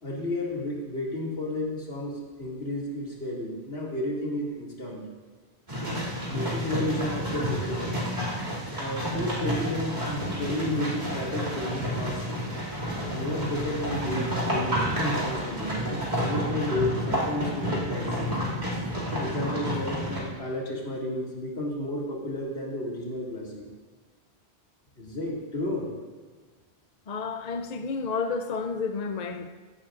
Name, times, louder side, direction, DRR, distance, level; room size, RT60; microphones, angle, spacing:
voice 1, 0.0-5.0 5.8-8.0 8.8-12.4 13.1-15.8 16.2-18.3 19.1-23.6 25.0-25.9, left 1 dB, 70° left, -4 dB, 2.6 m, -32 dB
sound 1, 5.7-20.2, equal, 40° right, 2.8 m, -30 dB
voice 2, 27.1-29.5, left 4 dB, 50° left, 6 dB, 0.6 m, -31 dB
16.0 x 11.5 x 2.5 m, 1.4 s
omnidirectional pair, 1.1 m